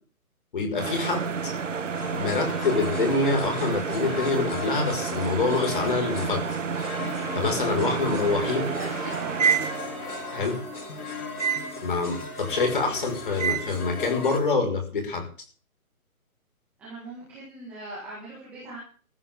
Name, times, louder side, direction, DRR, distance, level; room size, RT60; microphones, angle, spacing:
voice 1, 0.5-1.5 2.1-6.4 7.3-8.6 10.3-10.6 11.8-15.2, left 3 dB, 35° left, 4 dB, 5.0 m, -26 dB
sound 1, 0.8-10.3 11.4-11.8 13.4-13.8, right 6 dB, 60° right, 1.3 m, -29 dB
sound 2, 1.9-14.4, left 4 dB, 85° left, 3.6 m, -37 dB
sound 3, 8.2-14.2, right 5 dB, 45° right, 4.5 m, -45 dB
voice 2, 8.4-9.5 12.9-13.0 16.8-18.8, right 2 dB, 5° right, -8 dB, 1.7 m, -40 dB
18.5 x 14.5 x 3.6 m, 0.40 s
hypercardioid pair, 180°, 43 cm